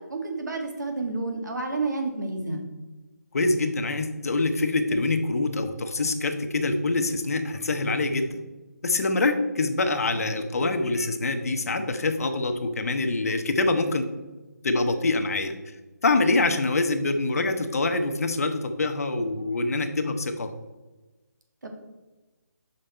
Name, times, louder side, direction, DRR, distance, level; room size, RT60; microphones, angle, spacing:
voice 1, 0.0-2.7 21.6-21.7, right 3 dB, 75° right, 3 dB, 1.7 m, -30 dB
voice 2, 3.3-8.4 8.8-14.0 14.6-15.5 16.0-20.5, left 2 dB, 55° left, 7 dB, 0.8 m, -25 dB
6.6 x 5.3 x 4.3 m, 1.1 s
hypercardioid pair, 170°, 10 cm